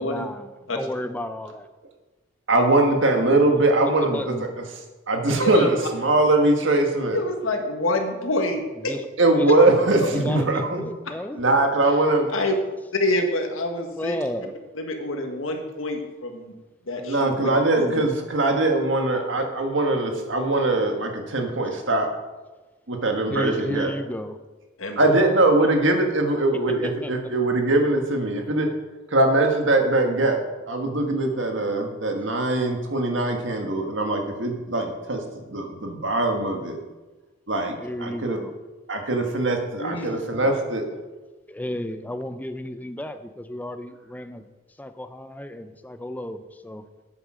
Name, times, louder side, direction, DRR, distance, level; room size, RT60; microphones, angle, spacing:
voice 1, 0.0-1.7 3.8-4.4 8.8-9.1 9.4-9.5 10.1-11.4 12.5-12.6 13.9-14.5 23.3-24.4 26.7-27.1 37.8-38.5 41.5-44.5 44.8-46.8, left 1 dB, 10° left, 9 dB, 0.5 m, -33 dB
voice 2, 2.5-4.5 5.1-7.2 9.2-10.8 11.3-12.3 17.0-22.1 22.9-23.9 25.0-28.7 29.1-35.2 35.5-36.8 37.5-38.4 38.9-40.8, right 2 dB, 65° right, 3 dB, 1.7 m, -22 dB
voice 3, 5.4-5.7 7.1-9.0 12.3-12.5 12.9-14.2 14.7-16.5 16.9-17.5 17.8-18.0 24.8-25.0 39.8-40.1 40.4-40.5, left 2 dB, 90° left, 4 dB, 1.6 m, -27 dB
9.2 x 8.3 x 6.2 m, 1.2 s
head